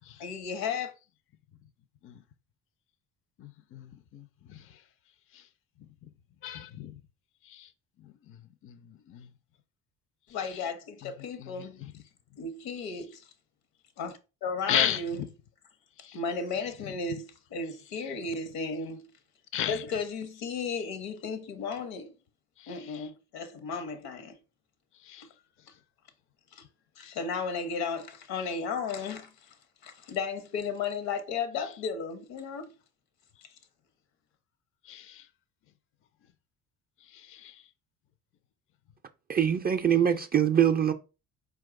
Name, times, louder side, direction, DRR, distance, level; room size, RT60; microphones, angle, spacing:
voice 1, 0.2-0.9 10.3-11.8 12.4-13.3 14.0-15.2 16.1-19.1 19.7-22.1 22.7-24.4 26.5-26.6 27.0-29.6 29.8-32.7 33.4-33.6, left 5 dB, 65° left, 0.9 m, -34 dB
voice 2, 3.4-4.8 5.3-5.5 6.4-7.0 7.4-7.7 8.0-9.3 11.0-11.1 11.4-11.9 14.7-15.3 16.0-16.2 19.5-19.8 22.6-23.1 25.0-25.3 27.0-27.1 34.8-35.3 37.0-37.6, left 11 dB, 35° left, 0.5 m, -35 dB
voice 3, 39.3-40.9, right 9 dB, 25° right, 0.4 m, -23 dB
4.4 x 2.3 x 3.7 m
hypercardioid pair, 65°, 40 cm